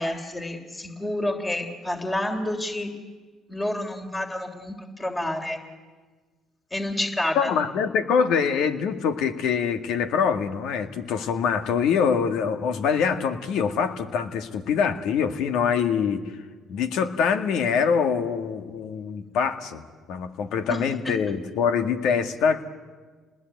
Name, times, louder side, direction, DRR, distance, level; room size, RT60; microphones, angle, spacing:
voice 1, 0.0-2.9 3.5-5.6 6.7-7.5 20.7-20.8, left 1 dB, 15° left, 5 dB, 3.5 m, -29 dB
voice 2, 7.4-16.2 16.7-19.8 20.1-22.7, left 6 dB, 75° left, 8 dB, 1.9 m, -24 dB
29.0 x 20.0 x 9.4 m, 1.4 s
supercardioid pair, 65°, 0 cm